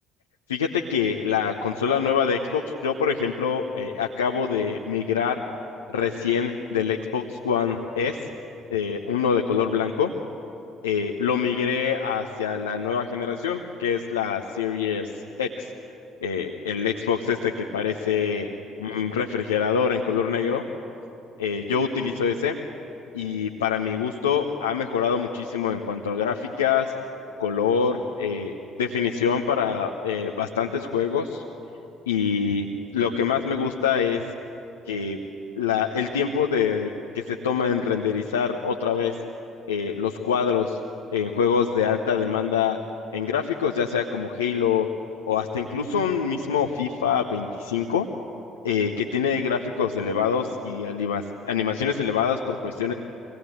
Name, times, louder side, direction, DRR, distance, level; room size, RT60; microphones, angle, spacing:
voice 1, 0.5-5.4 5.9-8.2 8.7-10.1 10.8-15.1 15.4-15.7 16.2-18.5 18.8-20.6 21.4-22.5 23.1-26.9 27.4-31.4 32.1-32.7 32.9-34.2 34.9-35.2 35.6-39.1 39.7-40.8 41.1-42.8 43.1-44.9 45.3-48.1 48.6-52.9, left 7 dB, 80° left, 2 dB, 0.9 m, -25 dB
24.0 x 18.5 x 7.9 m, 2.8 s
figure-of-eight pair, 50°, 0 cm